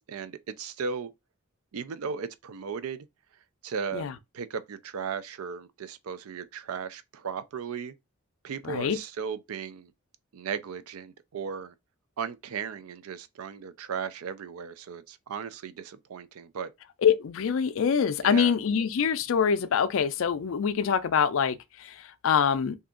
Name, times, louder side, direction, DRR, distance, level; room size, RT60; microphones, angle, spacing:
voice 1, 0.1-1.1 1.7-3.1 3.6-7.9 8.4-9.9 10.3-11.7 12.2-16.7 18.2-18.5, right 6 dB, 85° right, 0.4 m, -36 dB
voice 2, 8.6-9.0 17.0-22.8, left 7 dB, 70° left, 0.4 m, -25 dB
2.7 x 2.4 x 3.6 m
head